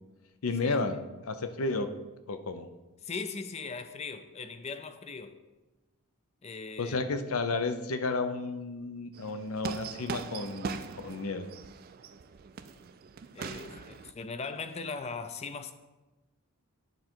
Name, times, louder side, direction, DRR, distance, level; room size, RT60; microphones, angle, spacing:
voice 1, 0.4-1.9 2.3-2.7 6.8-10.8 11.0-11.5, left 3 dB, 70° left, 0.6 m, -32 dB
voice 2, 3.0-5.4 6.4-7.0 13.3-15.7, left 4 dB, 30° left, 0.4 m, -39 dB
sound 1, 9.1-14.1, right 5 dB, 40° right, 0.3 m, -41 dB
10.5 x 3.8 x 4.5 m
head